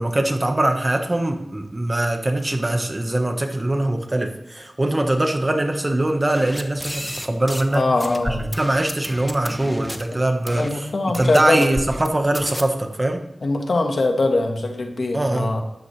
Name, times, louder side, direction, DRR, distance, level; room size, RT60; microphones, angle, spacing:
voice 1, 0.0-7.9 8.2-10.9 11.1-13.2 15.1-15.5, right 1 dB, 30° right, 5 dB, 1.4 m, -22 dB
sound 1, 6.3-7.8 8.0-10.0 10.5-10.7 11.1-12.1 12.3-12.6, equal, 5° left, 1.0 m, -32 dB
voice 2, 7.7-8.5 10.5-11.7 13.4-15.6, left 2 dB, 80° left, 3 dB, 1.6 m, -22 dB
13.0 x 9.9 x 3.4 m, 0.91 s
wide cardioid pair, 65°, 0 cm